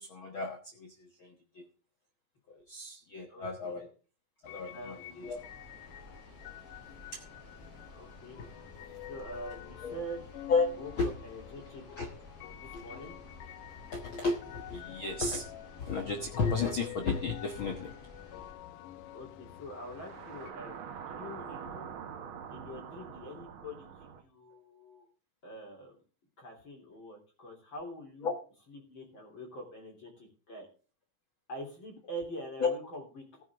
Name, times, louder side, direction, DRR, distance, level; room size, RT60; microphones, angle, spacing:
voice 1, 0.0-1.6 2.5-3.9 4.4-5.4 7.1-7.2 8.4-8.5 9.8-10.0 10.5-10.7 11.0-11.1 12.0-12.1 12.7-12.8 13.9-15.5 15.8-17.9 28.2-28.3 32.6-32.7, left 4 dB, 55° left, 4 dB, 1.5 m, -33 dB
voice 2, 3.3-3.8 4.7-5.3 7.9-8.4 9.1-10.2 10.6-11.8 12.6-13.2 19.1-21.9 22.5-25.1 25.4-26.0 26.4-28.3 28.7-30.7 31.5-33.4, equal, 35° left, 0 dB, 3.6 m, -45 dB
sound 1, 4.4-20.5, left 13 dB, 80° left, 2.3 m, -49 dB
sound 2, 5.2-18.5, left 1 dB, 15° right, 4.5 m, -54 dB
sound 3, 19.7-24.2, right 7 dB, 65° right, 1.3 m, -45 dB
15.5 x 9.6 x 3.6 m, 0.37 s
omnidirectional pair, 3.9 m